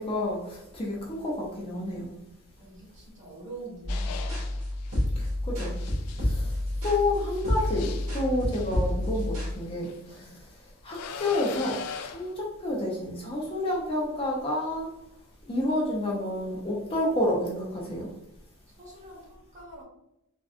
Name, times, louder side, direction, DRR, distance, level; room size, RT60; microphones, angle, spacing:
voice 1, 0.0-2.2 5.2-5.7 6.2-6.5 6.8-10.3 10.8-11.8 12.0-14.9 15.5-18.1, left 1 dB, 25° left, -3 dB, 0.6 m, -29 dB
voice 2, 2.6-4.3 10.2-10.4 18.7-19.8, right 2 dB, 35° right, -5 dB, 1.3 m, -45 dB
sound 1, 3.8-9.5, left 1 dB, 65° right, 1.4 m, -29 dB
sound 2, 3.9-5.0 5.7-10.0 10.9-12.3, left 7 dB, 80° left, 0.3 m, -42 dB
3.6 x 2.3 x 2.4 m, 0.83 s
head